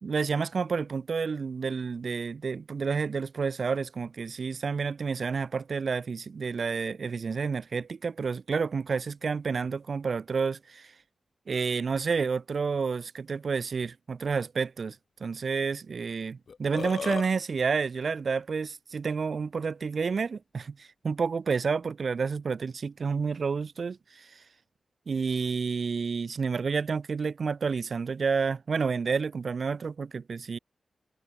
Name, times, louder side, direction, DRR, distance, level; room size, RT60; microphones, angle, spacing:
voice 1, 0.0-10.9 11.5-24.4 25.1-30.6, right 5 dB, 55° right, 2.7 m, -30 dB
Burping eructation, 16.1-16.2 16.5-17.3, left 5 dB, 60° left, 0.6 m, -34 dB
wide cardioid pair, 130°, 0 cm